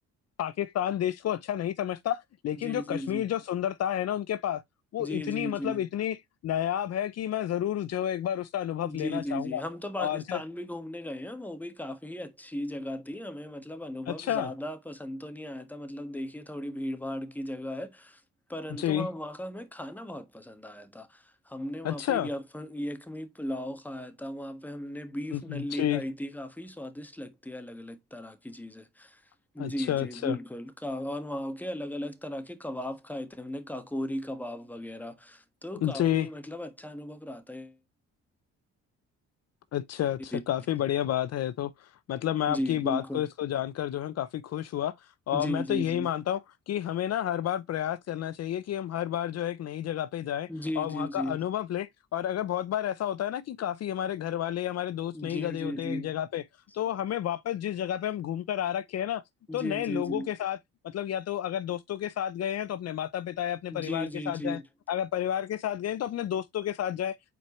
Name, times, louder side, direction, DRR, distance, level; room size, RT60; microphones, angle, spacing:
voice 1, 0.4-4.6 4.9-6.2 6.4-9.6 10.0-10.4 14.1-14.5 18.8-19.1 21.8-22.3 25.3-26.0 29.6-30.4 35.8-36.3 39.7-46.4 46.7-50.5 50.8-56.4 56.7-59.2 59.5-60.6 60.8-64.6 64.9-67.2, left 11 dB, 55° left, 0.6 m, -30 dB
voice 2, 2.5-3.3 5.0-5.8 8.8-18.2 18.5-29.2 29.5-37.8 40.3-40.4 42.5-43.2 45.3-46.1 50.5-51.4 55.1-56.1 59.5-60.3 63.7-64.6, left 1 dB, 5° left, 1.3 m, -36 dB
7.8 x 4.6 x 3.0 m
cardioid pair, 90°, 30 cm